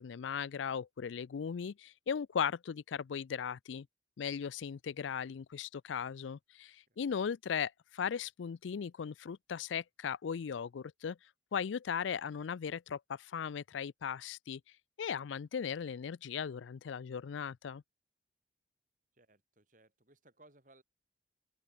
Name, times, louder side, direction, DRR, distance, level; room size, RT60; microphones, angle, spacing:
voice 1, 0.0-3.9 4.2-11.2 11.5-14.6 15.0-17.8, left 7 dB, 85° left, 0.4 m, -37 dB
voice 2, 6.9-7.2 19.1-20.8, right 2 dB, 45° right, 4.3 m, -64 dB
open air
head